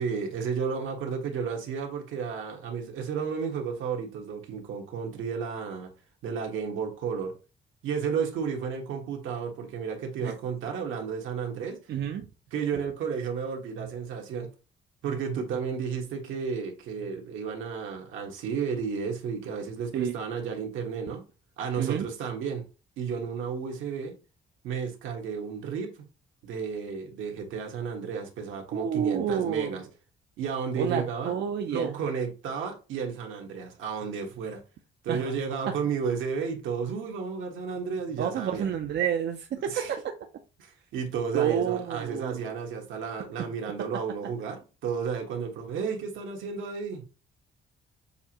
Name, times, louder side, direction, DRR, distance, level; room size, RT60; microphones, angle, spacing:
voice 1, 0.0-5.9 6.2-7.3 7.8-11.8 12.5-14.5 15.0-21.2 21.6-22.7 23.0-24.1 24.6-25.9 26.4-29.8 30.4-31.3 31.7-34.6 35.0-38.7 39.6-39.9 40.6-47.0, right 6 dB, 80° right, 1.4 m, -32 dB
voice 2, 11.9-12.2 19.9-20.2 21.8-22.1 28.7-29.7 30.8-31.9 35.1-35.3 35.7-35.8 38.2-40.0 41.3-42.4, right 9 dB, 60° right, 0.6 m, -29 dB
6.9 x 2.6 x 2.9 m
cardioid pair, 90°, 20 cm